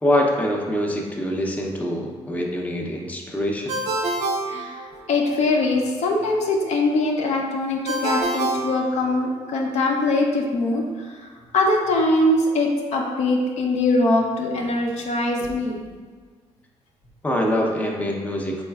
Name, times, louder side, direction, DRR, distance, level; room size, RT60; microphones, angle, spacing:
voice 1, 0.0-3.8 17.2-18.6, left 1 dB, 10° left, 0 dB, 0.5 m, -24 dB
Ringtone, 3.7-5.4 7.9-9.5, right 2 dB, 85° right, 0.4 m, -27 dB
voice 2, 4.5-11.3 11.5-15.8, left 2 dB, 70° left, 0 dB, 0.6 m, -22 dB
4.1 x 3.1 x 2.3 m, 1.5 s
cardioid pair, 75°, 12 cm